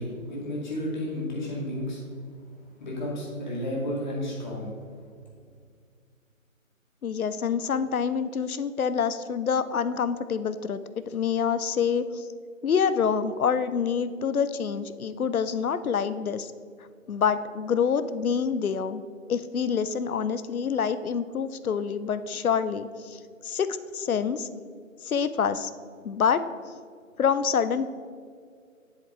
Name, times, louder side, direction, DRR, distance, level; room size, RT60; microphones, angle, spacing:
voice 1, 0.0-2.0 2.8-4.7, left 1 dB, 35° left, -3 dB, 2.1 m, -32 dB
voice 2, 7.0-12.3 12.6-16.5 17.1-19.0 19.3-24.5 25.0-25.7 26.0-26.5 27.2-27.8, left 6 dB, 85° left, 13 dB, 0.6 m, -26 dB
7.6 x 7.3 x 3.7 m, 2.1 s
figure-of-eight pair, 155°, 42 cm